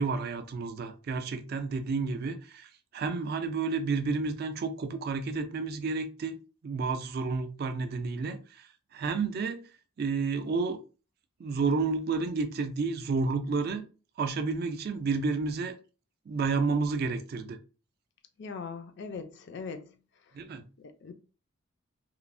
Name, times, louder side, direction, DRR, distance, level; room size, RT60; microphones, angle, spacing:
voice 1, 0.0-6.4 6.6-8.6 8.9-9.6 10.0-10.8 11.4-13.9 14.2-15.8 16.3-17.6 20.3-20.6, right 4 dB, 50° right, 0.3 m, -30 dB
voice 2, 18.4-19.9 20.8-21.1, left 5 dB, 55° left, 0.4 m, -40 dB
3.0 x 2.0 x 2.5 m
head